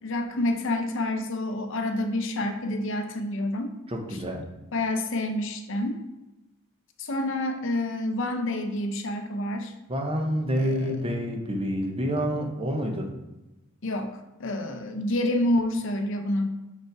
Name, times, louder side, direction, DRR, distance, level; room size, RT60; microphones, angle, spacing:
voice 1, 0.0-3.8 4.7-6.0 7.0-9.7 10.6-11.0 13.8-16.5, left 1 dB, 60° left, 6 dB, 0.7 m, -28 dB
voice 2, 3.9-4.5 9.9-13.1, equal, 25° right, 3 dB, 0.8 m, -28 dB
5.2 x 5.1 x 4.7 m, 1.0 s
head